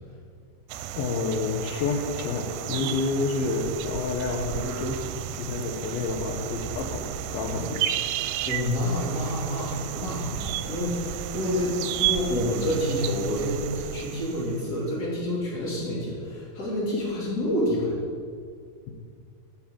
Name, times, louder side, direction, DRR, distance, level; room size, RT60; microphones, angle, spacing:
sound 1, 0.7-14.9, right 11 dB, 85° right, 2.4 m, -33 dB
voice 1, 1.0-7.9, left 3 dB, 85° left, 3 dB, 2.9 m, -29 dB
voice 2, 8.4-17.9, left 1 dB, 25° left, -5 dB, 3.4 m, -28 dB
9.5 x 7.1 x 8.7 m, 2.1 s
omnidirectional pair, 4.1 m